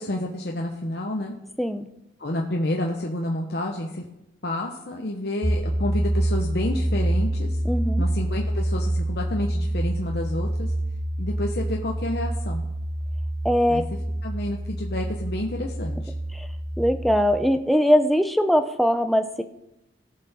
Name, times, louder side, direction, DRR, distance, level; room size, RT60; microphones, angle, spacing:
voice 1, 0.0-1.3 2.2-4.0 4.4-7.6 8.0-10.7 11.2-12.6 13.7-13.8 14.2-16.1, left 1 dB, 60° left, 1 dB, 0.9 m, -29 dB
sound 1, 5.4-17.3, right 1 dB, 25° right, 3.3 m, -27 dB
voice 2, 7.6-8.0 13.4-13.9 16.3-16.5 16.8-19.4, equal, ahead, 8 dB, 0.5 m, -21 dB
17.0 x 5.9 x 4.2 m, 0.88 s
head